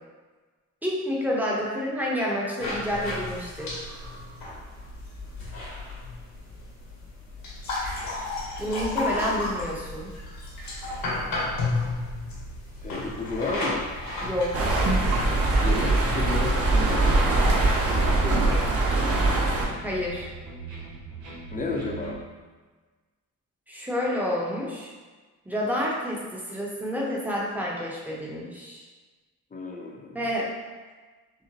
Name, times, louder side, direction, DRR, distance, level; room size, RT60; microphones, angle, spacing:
voice 1, 0.8-3.8 8.6-10.1 14.2-14.6 19.8-20.3 23.7-24.9 25.5-28.8 30.1-30.5, left 1 dB, 5° right, -4 dB, 0.9 m, -29 dB
sound 1, 2.6-18.3, left 2 dB, 70° left, 1.4 m, -34 dB
sound 2, 3.6-5.4 5.8-5.9 6.3-6.4 7.2-22.2, right 4 dB, 85° right, 1.2 m, -44 dB
voice 2, 12.8-13.8 15.6-16.5 17.8-18.6 21.5-22.2 29.5-30.2, left 3 dB, 25° left, 0 dB, 0.7 m, -32 dB
sound 3, 14.5-19.7, right 2 dB, 45° right, 1.1 m, -22 dB
5.6 x 2.1 x 2.9 m, 1.3 s
cardioid pair, 90°, 35 cm